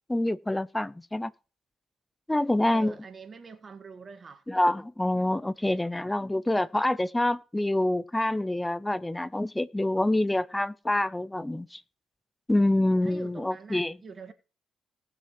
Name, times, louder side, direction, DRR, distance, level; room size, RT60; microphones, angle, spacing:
voice 1, 0.1-1.3 2.3-2.9 4.5-11.8 12.5-14.0, left 1 dB, 10° left, 0.8 m, -26 dB
voice 2, 2.7-4.4 13.0-14.3, right 5 dB, 40° right, 1.7 m, -45 dB
19.0 x 6.7 x 3.2 m
cardioid pair, 90°, 0 cm